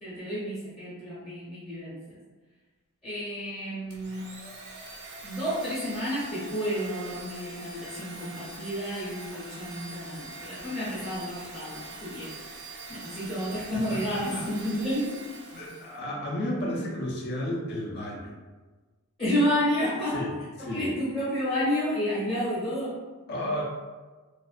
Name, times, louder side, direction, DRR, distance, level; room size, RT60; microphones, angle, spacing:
voice 1, 0.0-2.0 3.0-4.3 5.2-12.3 12.9-15.2 19.2-20.3 20.6-23.0, equal, 20° left, -12 dB, 0.8 m, -30 dB
Domestic sounds home sounds, 3.9-16.0, right 2 dB, 50° right, 0.5 m, -43 dB
voice 2, 13.7-14.4 15.5-18.3 20.1-20.3 20.6-20.9 23.3-23.6, left 1 dB, 45° left, -3 dB, 0.5 m, -32 dB
2.4 x 2.2 x 2.4 m, 1.3 s
head